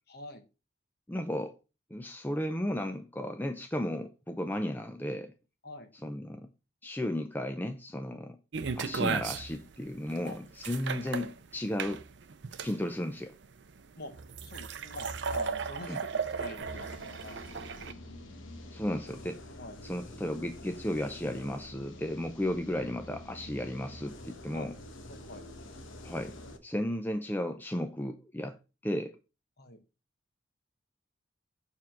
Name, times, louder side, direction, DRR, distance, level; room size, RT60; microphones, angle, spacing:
voice 1, 0.1-0.4 5.6-5.9 10.2-10.4 10.8-11.0 14.0-14.1 14.4-17.5 17.8-17.9 19.6-19.8 24.5-24.7 25.1-25.4 29.6-29.8, left 2 dB, 50° left, 1.2 m, -45 dB
voice 2, 1.1-1.6 1.9-5.3 6.0-6.5 6.8-8.4 8.8-12.0 12.6-13.3 15.9-16.0 18.7-19.4 19.8-24.7 26.0-29.2, left 1 dB, 10° left, 0.4 m, -34 dB
sound 1, 8.5-17.9, right 5 dB, 60° right, 0.5 m, -36 dB
sound 2, 16.6-26.6, left 1 dB, 80° left, 1.0 m, -47 dB
6.8 x 3.6 x 5.9 m
head